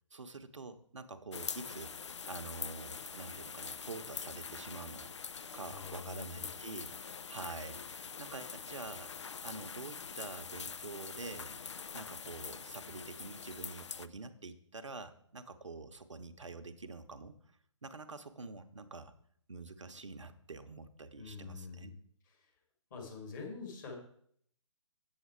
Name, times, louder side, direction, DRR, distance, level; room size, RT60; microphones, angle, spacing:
voice 1, 0.1-1.9 2.3-5.1 5.5-6.9 7.3-9.1 9.4-11.6 11.9-17.4 17.8-19.1 19.5-21.9, right 3 dB, 70° right, 8 dB, 0.9 m, -46 dB
sound 1, 1.3-14.1, left 6 dB, 65° left, 0.4 m, -44 dB
voice 2, 5.7-6.5 21.2-22.0 22.9-24.0, left 5 dB, 40° left, 0 dB, 2.5 m, -45 dB
8.1 x 7.4 x 4.5 m, 0.65 s
figure-of-eight pair, 135°, 16 cm